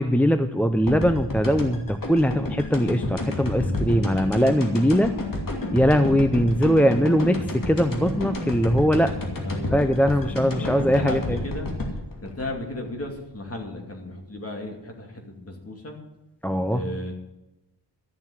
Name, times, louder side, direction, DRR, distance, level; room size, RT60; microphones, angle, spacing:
voice 1, 0.0-5.1 5.7-9.1 9.7-11.4 16.4-16.9, equal, 5° left, 8 dB, 0.5 m, -21 dB
sound 1, 0.9-13.7, left 2 dB, 50° left, 2.6 m, -30 dB
voice 2, 5.8-6.2 9.4-9.9 10.2-11.7 12.2-16.0 16.7-17.1, left 1 dB, 35° left, 2 dB, 2.6 m, -35 dB
13.0 x 7.4 x 8.0 m, 0.94 s
wide cardioid pair, 155°, 42 cm